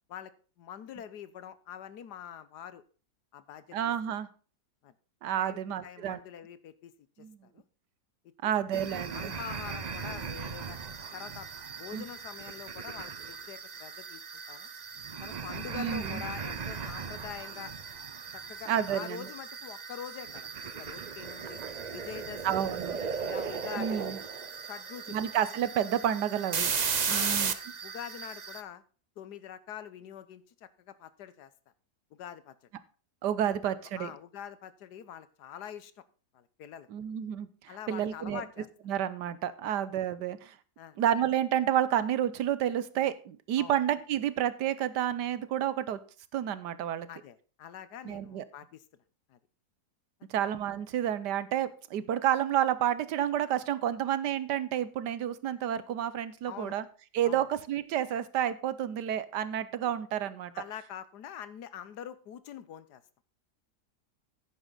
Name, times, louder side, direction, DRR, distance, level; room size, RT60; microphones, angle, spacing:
voice 1, 0.1-2.8 3.3-3.8 4.1-4.2 4.8-4.9 5.4-6.9 7.4-7.6 8.4-10.8 11.1-14.2 14.5-14.7 15.2-17.7 18.3-20.5 20.8-21.6 21.9-22.7 23.2-24.0 24.6-25.2 27.1-27.5 27.8-28.8 29.2-31.5 32.1-32.5 33.5-35.9 36.3-36.9 37.7-38.7 39.6-39.7 40.8-41.0 43.6-43.8 47.1-48.8 49.3-49.4 56.5-56.8 57.2-57.4 60.5-63.0, left 9 dB, 80° left, 15 dB, 1.4 m, -45 dB
voice 2, 3.7-4.3 5.2-6.2 7.2-7.4 8.4-9.3 11.9-12.0 15.8-16.2 18.7-19.3 21.6-21.7 22.4-23.0 23.8-24.2 25.1-26.7 27.1-27.5 33.2-34.1 36.9-38.4 38.9-40.5 41.0-46.0 46.3-47.1 48.0-48.4 50.3-56.8 57.1-60.5, right 10 dB, 85° right, 15 dB, 1.4 m, -30 dB
sound 1, 8.7-28.6, right 6 dB, 50° right, 0.5 m, -37 dB
9.9 x 9.9 x 3.9 m, 0.37 s
omnidirectional pair, 1.8 m